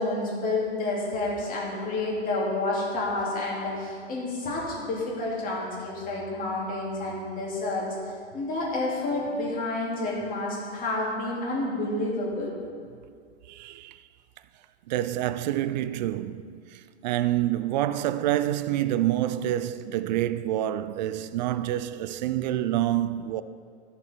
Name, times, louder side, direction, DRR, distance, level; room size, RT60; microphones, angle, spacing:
voice 1, 0.0-12.5, left 2 dB, 25° left, 2.7 m, -29 dB
voice 2, 13.5-14.0 14.9-23.4, right 13 dB, 40° right, 0.4 m, -27 dB
13.0 x 6.8 x 4.4 m
hypercardioid pair, 125°, 35 cm